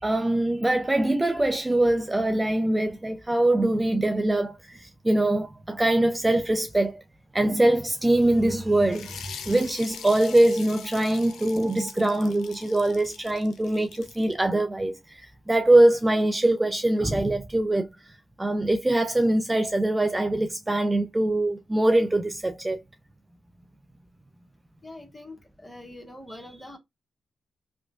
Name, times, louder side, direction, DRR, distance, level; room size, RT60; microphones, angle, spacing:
voice 1, 0.0-7.0 7.3-17.9 18.4-22.8, right 1 dB, 20° right, 0.4 m, -23 dB
sound 1, 8.9-14.3, left 7 dB, 80° left, 0.4 m, -43 dB
voice 2, 24.8-26.8, left 1 dB, 10° left, 1.1 m, -44 dB
2.9 x 2.2 x 2.5 m
supercardioid pair, 45°, 0 cm